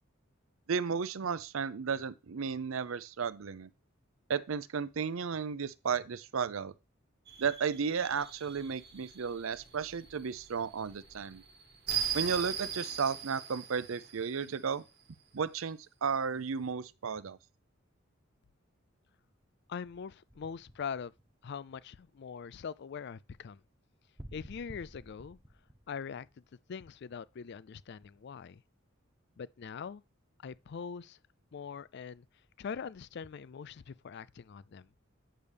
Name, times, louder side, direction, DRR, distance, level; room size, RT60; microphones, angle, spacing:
voice 1, 0.7-3.7 4.3-6.7 7.4-11.4 12.1-14.8 15.3-17.4, right 6 dB, 75° right, 0.5 m, -34 dB
sound 1, 7.3-14.7, right 8 dB, 50° right, 1.4 m, -40 dB
voice 2, 19.7-21.1 21.4-23.6 24.3-25.4 25.9-26.3 26.7-28.6 29.4-30.0 30.4-31.2 31.5-32.3 32.6-34.9, left 6 dB, 55° left, 0.4 m, -42 dB
sound 2, 20.3-21.7 24.2-26.7, equal, 5° right, 0.7 m, -51 dB
8.8 x 6.6 x 3.3 m
head